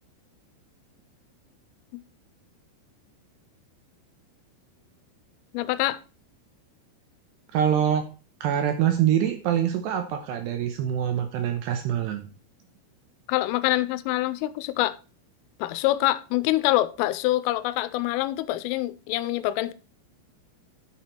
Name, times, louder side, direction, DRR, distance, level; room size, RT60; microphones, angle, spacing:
voice 1, 5.5-6.0 13.3-15.0 15.6-19.7, left 16 dB, 85° left, 3.1 m, -25 dB
voice 2, 7.5-8.0 8.4-12.3, right 9 dB, 75° right, 2.6 m, -24 dB
10.0 x 7.4 x 4.3 m
omnidirectional pair, 5.8 m